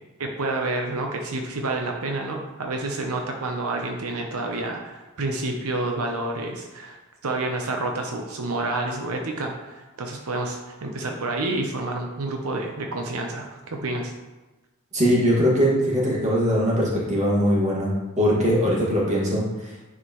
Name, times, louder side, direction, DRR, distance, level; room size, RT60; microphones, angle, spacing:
voice 1, 0.2-7.0 7.2-14.1, right 2 dB, 90° right, 2 dB, 0.8 m, -29 dB
voice 2, 14.9-19.7, equal, 35° right, -5 dB, 2.0 m, -21 dB
9.7 x 4.9 x 3.1 m, 1.1 s
head